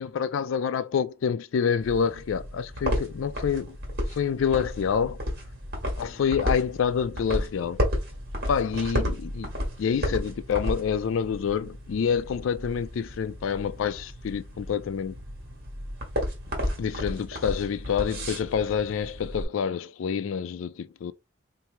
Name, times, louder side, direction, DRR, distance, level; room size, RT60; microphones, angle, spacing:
voice 1, 0.0-3.8 4.1-5.2 6.0-7.8 8.5-9.5 9.8-15.2 16.8-21.1, left 7 dB, 75° left, 0.3 m, -27 dB
sound 1, 1.8-19.4, equal, 55° right, 1.5 m, -33 dB
3.0 x 2.7 x 4.4 m
head